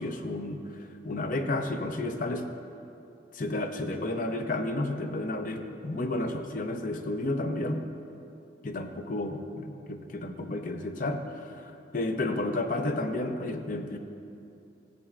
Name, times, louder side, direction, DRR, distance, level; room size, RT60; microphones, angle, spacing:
voice 1, 0.0-2.5 3.3-7.9 8.6-14.0, left 2 dB, 45° left, 6 dB, 0.6 m, -32 dB
15.5 x 8.2 x 2.4 m, 2.6 s
head